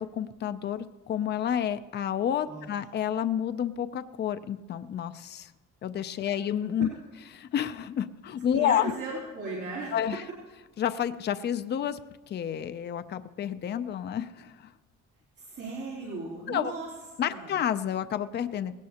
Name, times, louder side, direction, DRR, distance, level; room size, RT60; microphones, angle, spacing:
voice 1, 0.0-5.5 5.8-6.9 7.3-8.9 9.9-10.2 10.8-12.0 12.3-14.7 16.5-16.7 17.2-18.7, left 9 dB, 35° left, 11 dB, 0.4 m, -30 dB
voice 2, 8.5-10.0 15.4-16.9 17.2-17.6, right 2 dB, 50° right, -6 dB, 3.4 m, -37 dB
19.0 x 17.0 x 2.9 m, 1.2 s
cardioid pair, 160°, 30 cm